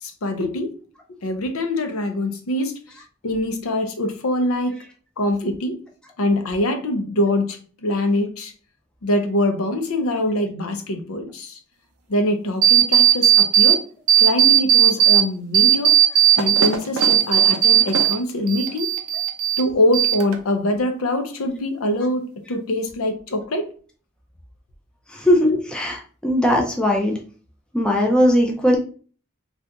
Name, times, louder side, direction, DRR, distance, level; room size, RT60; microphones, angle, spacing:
voice 1, 0.0-0.7 1.2-3.0 3.2-4.8 5.2-5.8 6.2-8.5 9.0-11.6 12.1-13.8 14.2-16.0 16.4-18.9 19.6-23.7, left 1 dB, 80° left, 6 dB, 0.6 m, -23 dB
sound 1, 12.6-13.8 14.1-15.2 15.5-18.2 18.5-19.6 19.9-20.5, right 10 dB, 80° right, 0.5 m, -16 dB
voice 2, 25.1-26.0 26.2-27.2 27.7-28.8, left 1 dB, 5° left, -1 dB, 0.4 m, -18 dB
2.7 x 2.4 x 3.4 m, 0.41 s
head